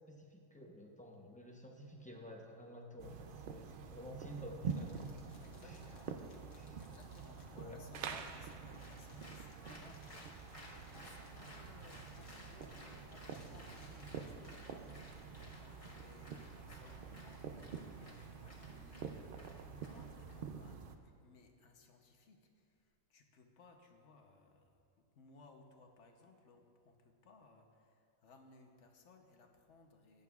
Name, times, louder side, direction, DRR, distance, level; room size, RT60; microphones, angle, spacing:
voice 1, 0.1-5.1 5.6-5.8 6.5-6.8 7.5-7.8, equal, 10° left, 0 dB, 0.5 m, -51 dB
sound 1, 3.0-21.0, right 6 dB, 70° right, 0.5 m, -47 dB
sound 2, 4.6-14.6, left 3 dB, 85° left, 1.8 m, -67 dB
voice 2, 5.4-6.2 6.5-30.2, left 3 dB, 60° left, 4 dB, 1.1 m, -62 dB
Applause, 8.7-20.4, left 1 dB, 25° left, 1.0 m, -58 dB
15.0 x 10.5 x 2.4 m, 2.3 s
omnidirectional pair, 1.5 m